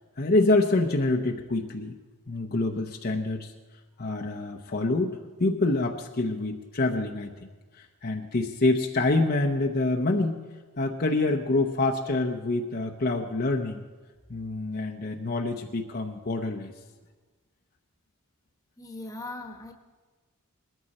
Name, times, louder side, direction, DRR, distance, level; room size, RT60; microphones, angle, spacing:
voice 1, 0.2-2.0 2.3-3.5 4.0-7.5 7.8-10.4 10.8-13.8 14.3-16.7, left 2 dB, 45° left, 2 dB, 0.8 m, -26 dB
voice 2, 18.8-19.7, left 2 dB, 15° left, 4 dB, 1.2 m, -39 dB
20.0 x 14.0 x 4.3 m, 1.3 s
head